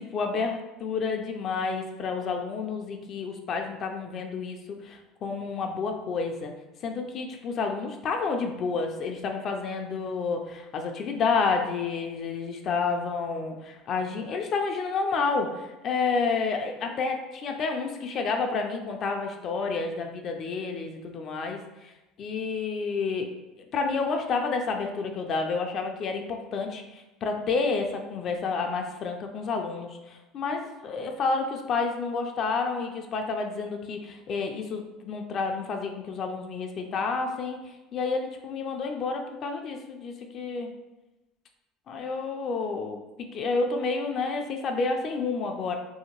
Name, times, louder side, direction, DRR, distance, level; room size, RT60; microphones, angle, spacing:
voice 1, 0.0-6.5 6.8-21.9 22.2-23.3 23.7-40.7 41.9-43.0 43.3-45.8, left 4 dB, 40° left, 3 dB, 0.3 m, -30 dB
2.8 x 2.7 x 2.9 m, 1.0 s
cardioid pair, 140°, 0 cm